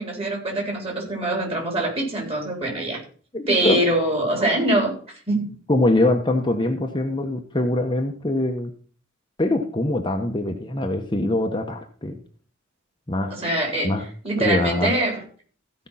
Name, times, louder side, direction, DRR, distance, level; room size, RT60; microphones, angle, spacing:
voice 1, 0.0-3.0 3.5-4.9 5.3-5.5 13.3-14.0 14.2-15.2, right 1 dB, 30° right, 1 dB, 4.0 m, -23 dB
voice 2, 3.3-3.8 5.7-8.7 9.4-12.2 13.1-13.4 13.8-14.0 14.4-14.9, left 1 dB, 25° left, 4 dB, 1.0 m, -23 dB
15.5 x 5.4 x 5.6 m, 0.42 s
head